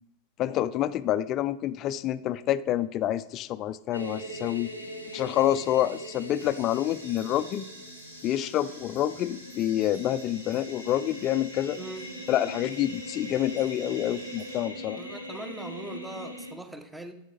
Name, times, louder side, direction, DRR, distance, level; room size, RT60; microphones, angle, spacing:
voice 1, 0.4-4.7 5.1-7.6 8.2-11.8 12.3-15.0, left 12 dB, 35° left, 15 dB, 0.4 m, -27 dB
sound 1, 3.9-16.5, equal, 85° right, 1.2 m, -41 dB
sound 2, 6.4-14.6, right 1 dB, 60° right, 3.8 m, -49 dB
voice 2, 15.0-17.2, right 1 dB, 5° right, 9 dB, 0.8 m, -41 dB
10.5 x 7.8 x 4.1 m, 0.94 s
figure-of-eight pair, 90°, 0 cm